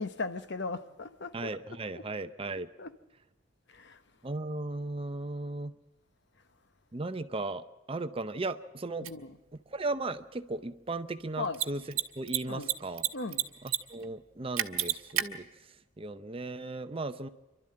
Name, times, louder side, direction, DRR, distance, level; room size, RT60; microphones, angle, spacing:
voice 1, 0.0-1.5 1.9-2.0 2.8-2.9 3.7-4.0 9.0-9.4 11.4-11.6 12.5-12.7 13.1-13.5, left 3 dB, 55° left, 0.9 m, -37 dB
voice 2, 1.3-2.7 4.2-5.7 6.9-9.1 9.7-11.8 12.2-13.1 13.9-15.5 16.0-17.3, right 2 dB, 25° right, 0.6 m, -36 dB
Mechanisms, 9.0-9.1 11.5-11.7 11.9-12.0 12.3-13.1 13.3-13.8 14.0-14.1 14.6-15.2, right 12 dB, 75° right, 1.2 m, -28 dB
27.5 x 12.0 x 8.7 m
head